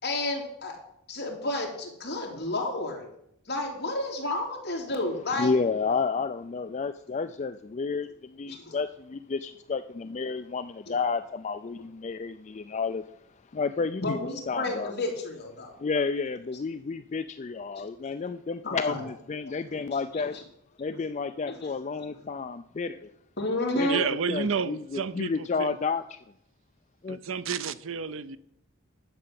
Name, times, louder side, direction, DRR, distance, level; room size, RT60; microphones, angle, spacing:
voice 1, 0.0-0.8 1.1-3.0 3.5-5.5 8.5-8.7 10.9-11.0 14.0-15.7 18.6-19.0 20.1-20.2 20.9-21.0 21.5-21.6 23.4-24.0, left 2 dB, 50° left, 3.0 m, -31 dB
voice 2, 5.4-13.1 13.5-14.9 15.8-20.4 20.8-23.1 23.7-26.2 27.0-27.2, left 4 dB, 35° left, 0.3 m, -31 dB
voice 3, 23.8-25.8 27.1-28.4, right 6 dB, 70° right, 0.6 m, -31 dB
11.5 x 6.7 x 7.6 m
head